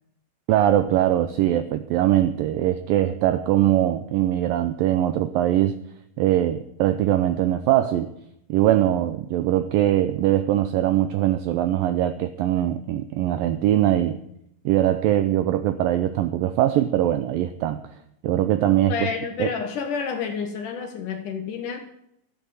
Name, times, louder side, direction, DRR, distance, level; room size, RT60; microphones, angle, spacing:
voice 1, 0.5-5.8 6.2-8.1 8.5-14.2 14.7-17.8 18.2-18.9 19.4-19.5, right 12 dB, 85° right, 10 dB, 2.0 m, -21 dB
voice 2, 18.9-21.9, left 6 dB, 65° left, 5 dB, 2.2 m, -29 dB
13.0 x 9.0 x 7.6 m, 0.77 s
omnidirectional pair, 4.7 m